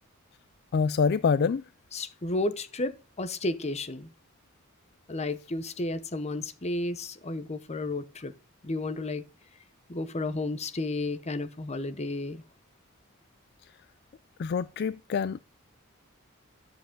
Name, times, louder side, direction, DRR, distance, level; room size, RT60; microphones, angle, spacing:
voice 1, 0.7-1.6 14.4-15.4, left 5 dB, 50° left, 0.3 m, -26 dB
voice 2, 1.9-4.1 5.1-8.3 8.6-9.2 9.9-12.4, left 2 dB, 30° left, 0.8 m, -32 dB
10.0 x 7.5 x 3.7 m
head